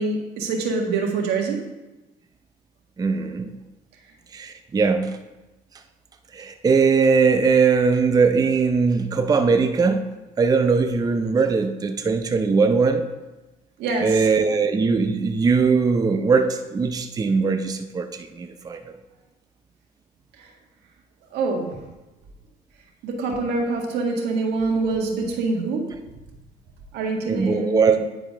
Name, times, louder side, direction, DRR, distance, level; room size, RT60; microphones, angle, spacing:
voice 1, 0.0-1.6 13.8-14.3 21.3-21.8 23.0-26.0 26.9-28.0, right 3 dB, 85° right, 1 dB, 1.7 m, -25 dB
voice 2, 3.0-3.5 4.3-5.2 6.3-13.1 14.0-18.8 27.3-28.0, right 5 dB, 20° right, 7 dB, 0.6 m, -20 dB
9.7 x 4.9 x 5.1 m, 1.1 s
cardioid pair, 110°, 17 cm